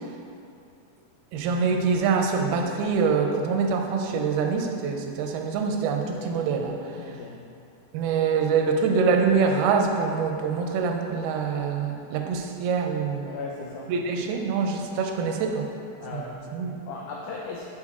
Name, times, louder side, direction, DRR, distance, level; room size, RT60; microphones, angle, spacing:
voice 1, 1.3-7.1 7.9-13.4 13.9-15.7 16.1-16.8, right 5 dB, 85° right, 3 dB, 2.5 m, -25 dB
voice 2, 7.0-7.4 13.3-13.9 16.0-16.4 16.9-17.7, left 4 dB, 90° left, -2 dB, 1.7 m, -37 dB
8.2 x 4.8 x 3.6 m, 2.5 s
omnidirectional pair, 4.3 m